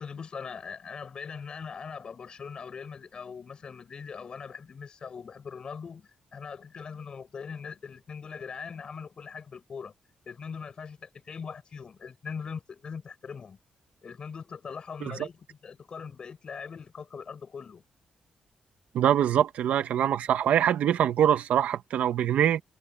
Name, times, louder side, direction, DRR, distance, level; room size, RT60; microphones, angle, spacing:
voice 1, 0.0-9.9 10.3-13.6 14.0-17.8, left 6 dB, 40° left, 5.5 m, -41 dB
voice 2, 18.9-22.6, right 10 dB, 85° right, 1.6 m, -24 dB
wide cardioid pair, 165°, 2 cm